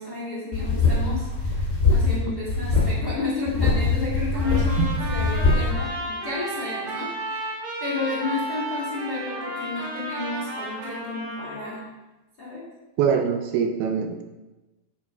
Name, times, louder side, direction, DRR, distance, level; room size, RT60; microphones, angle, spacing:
voice 1, 0.0-11.8 12.4-12.7, left 3 dB, 90° left, -7 dB, 0.8 m, -32 dB
sound 1, 0.5-2.2 2.5-2.9 3.5-5.7, left 3 dB, 20° left, 1.3 m, -22 dB
Trumpet, 4.3-11.8, right 1 dB, 50° right, 4.6 m, -33 dB
voice 2, 13.0-14.2, right 7 dB, 80° right, 6 dB, 2.5 m, -23 dB
11.0 x 4.0 x 4.8 m, 1.1 s
omnidirectional pair, 4.7 m